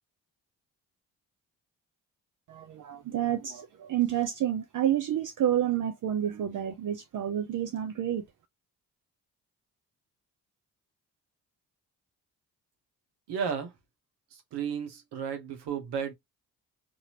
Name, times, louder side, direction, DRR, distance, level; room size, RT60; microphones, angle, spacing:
voice 1, 2.5-8.2, right 11 dB, 50° right, 0.6 m, -29 dB
voice 2, 13.3-13.7 14.3-16.1, right 7 dB, 75° right, 1.0 m, -33 dB
2.7 x 2.6 x 2.8 m
supercardioid pair, 55°, 40 cm